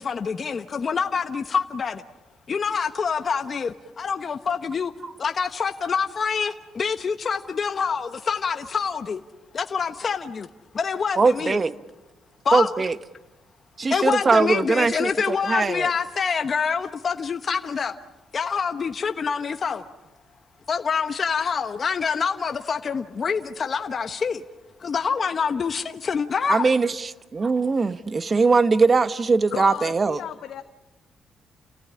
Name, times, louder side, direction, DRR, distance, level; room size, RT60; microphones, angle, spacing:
voice 1, 0.0-2.0 2.5-4.9 5.2-9.2 9.5-10.5 10.7-11.6 12.4-12.7 13.9-18.0 18.3-19.8 20.7-24.4 24.8-26.7, left 6 dB, 45° left, 1.1 m, -26 dB
voice 2, 11.2-11.7 12.5-13.0 13.8-15.9 26.5-30.2, right 4 dB, 35° right, 1.1 m, -21 dB
voice 3, 29.5-30.6, left 9 dB, 70° left, 1.1 m, -33 dB
30.0 x 18.0 x 8.7 m
cardioid pair, 90°, 0 cm